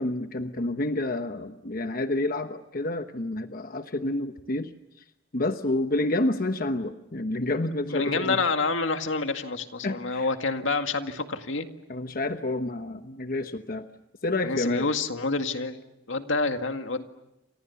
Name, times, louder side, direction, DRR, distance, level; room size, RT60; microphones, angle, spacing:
voice 1, 0.0-4.7 5.3-8.4 9.8-10.3 11.9-13.8 14.2-14.8, left 2 dB, 45° left, 8 dB, 1.1 m, -29 dB
voice 2, 7.9-11.7 14.4-15.8 16.1-17.0, left 3 dB, 80° left, 7 dB, 2.0 m, -28 dB
29.5 x 27.0 x 7.1 m, 0.91 s
head